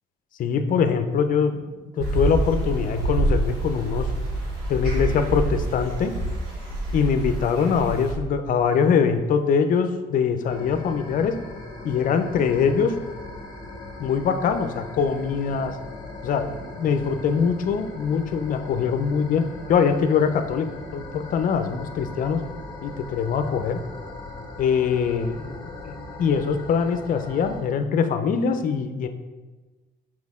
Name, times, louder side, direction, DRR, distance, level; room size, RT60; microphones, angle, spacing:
voice 1, 0.4-4.1 4.7-6.1 6.9-11.3 11.8-12.9 14.0-15.8 16.2-19.4 19.7-22.4 22.8-23.8 24.6-29.1, left 6 dB, 55° left, 8 dB, 0.6 m, -23 dB
sound 1, 2.0-8.1, right 2 dB, 80° right, 1.6 m, -27 dB
sound 2, 10.5-27.6, left 2 dB, 25° left, 1.0 m, -39 dB
6.2 x 4.5 x 3.6 m, 1.2 s
cardioid pair, 110°, 17 cm